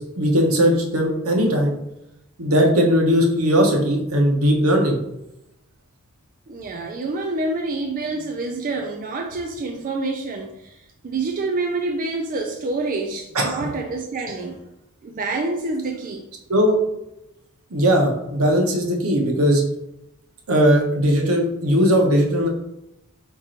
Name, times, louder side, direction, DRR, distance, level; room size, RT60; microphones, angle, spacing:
voice 1, 0.0-1.8 2.4-5.0 13.3-13.7 16.5-16.8 17.7-19.6 20.5-22.5, equal, 75° right, 1 dB, 1.0 m, -18 dB
voice 2, 6.5-14.6 15.0-16.2, right 3 dB, 40° right, 2 dB, 0.4 m, -27 dB
4.6 x 2.5 x 4.3 m, 0.86 s
head